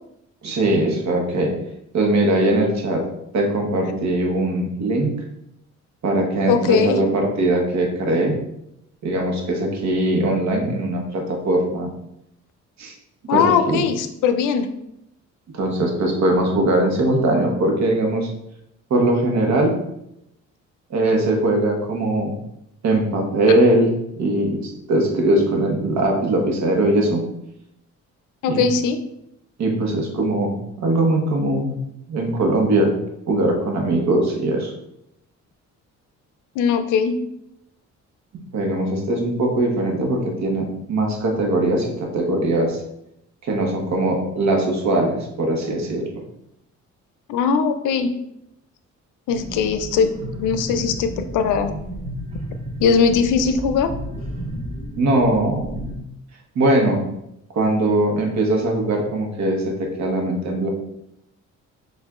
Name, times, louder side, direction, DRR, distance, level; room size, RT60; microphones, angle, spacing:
voice 1, 0.4-1.5 1.9-3.1 3.3-5.1 6.0-8.4 9.0-11.9 12.8-12.9 13.3-13.8 15.5-18.3 18.9-19.8 20.9-22.3 22.8-27.3 28.5-28.6 29.6-31.8 32.1-33.0 33.3-34.7 38.5-42.8 43.4-46.2 55.0-55.7 56.5-57.0 57.5-60.7, right 1 dB, 65° right, 2 dB, 1.0 m, -20 dB
voice 2, 6.5-7.0 13.3-14.7 28.4-29.0 36.6-37.2 47.3-48.1 49.3-50.1 50.4-51.8 52.8-53.9, left 6 dB, 85° left, 9 dB, 0.5 m, -20 dB
sound 1, 49.3-56.0, equal, 20° right, 1.3 m, -32 dB
6.6 x 2.5 x 2.4 m, 0.81 s
cardioid pair, 90°, 30 cm